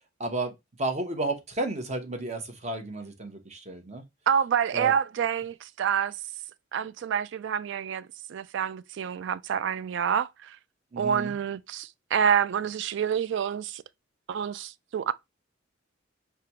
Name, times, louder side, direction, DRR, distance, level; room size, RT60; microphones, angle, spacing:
voice 1, 0.2-0.5 0.8-4.0 4.7-4.9 10.9-11.3, right 2 dB, 35° right, 0.9 m, -32 dB
voice 2, 4.3-6.1 6.7-10.6 11.0-13.8 14.3-15.1, right 8 dB, 65° right, 0.3 m, -27 dB
6.6 x 2.3 x 2.8 m
head